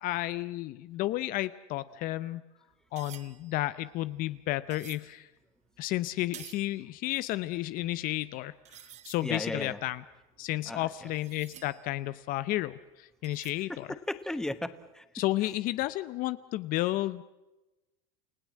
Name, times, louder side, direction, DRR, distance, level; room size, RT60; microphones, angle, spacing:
voice 1, 0.0-2.4 2.9-5.3 5.8-10.0 10.4-13.9 15.2-17.2, left 16 dB, 50° left, 15 dB, 0.7 m, -32 dB
sound 1, 2.7-5.2 5.7-6.8 7.1-7.2 7.8-7.9 8.1-8.2 8.7-9.4 9.9-12.3 13.2-13.9 14.1-14.4, right 11 dB, 35° right, 1.2 m, -51 dB
voice 2, 9.2-9.8 10.7-10.9 13.7-15.0, left 1 dB, 5° left, 12 dB, 1.2 m, -35 dB
29.0 x 16.5 x 7.5 m, 1.0 s
supercardioid pair, 135°, 19 cm